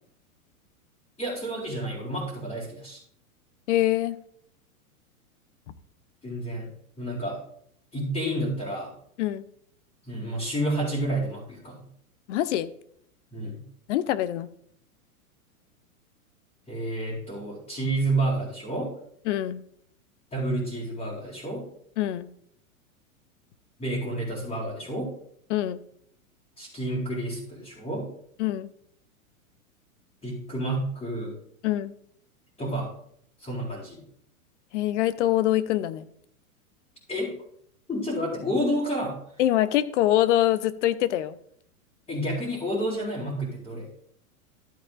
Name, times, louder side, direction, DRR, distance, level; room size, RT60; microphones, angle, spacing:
voice 1, 1.2-3.0 6.2-6.7 7.0-7.4 7.9-8.9 10.1-11.8 13.3-13.6 16.7-18.9 20.3-21.7 23.8-25.1 26.6-28.1 30.2-31.3 32.6-32.9 33.4-34.0 37.1-37.3 37.9-39.2 42.1-43.9, right 1 dB, 15° left, -7 dB, 4.4 m, -30 dB
voice 2, 3.7-4.2 9.2-9.4 12.3-12.7 13.9-14.5 19.3-19.6 22.0-22.3 25.5-25.8 28.4-28.7 31.6-31.9 34.7-36.1 39.4-41.4, left 13 dB, 55° left, 15 dB, 0.7 m, -24 dB
13.5 x 8.6 x 2.5 m, 0.67 s
hypercardioid pair, 115°, 44 cm